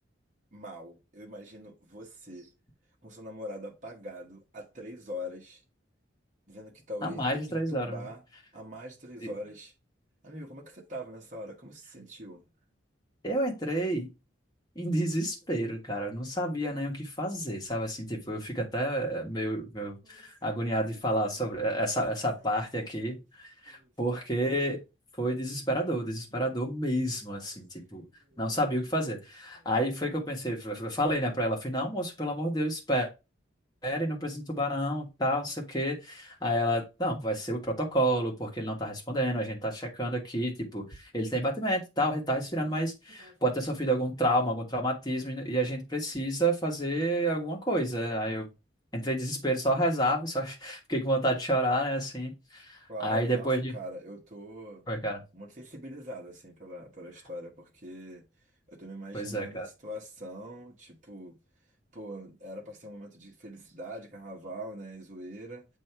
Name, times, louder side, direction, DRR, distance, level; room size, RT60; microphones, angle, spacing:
voice 1, 0.5-2.5 3.0-5.6 6.5-8.2 8.5-9.7 10.2-12.4 20.0-22.6 23.0-23.1 23.7-23.9 26.8-27.6 27.9-28.4 29.6-29.7 43.2-43.4 52.9-54.8 55.3-58.2 58.7-61.4 61.9-65.7, equal, 40° right, 1.2 m, -43 dB
voice 2, 7.0-8.0 9.2-9.3 13.2-14.1 14.7-24.8 25.2-28.0 28.4-33.1 33.8-48.5 48.9-53.8 54.9-55.2 59.1-59.7, right 1 dB, 20° left, 1.4 m, -30 dB
7.3 x 2.8 x 4.5 m
head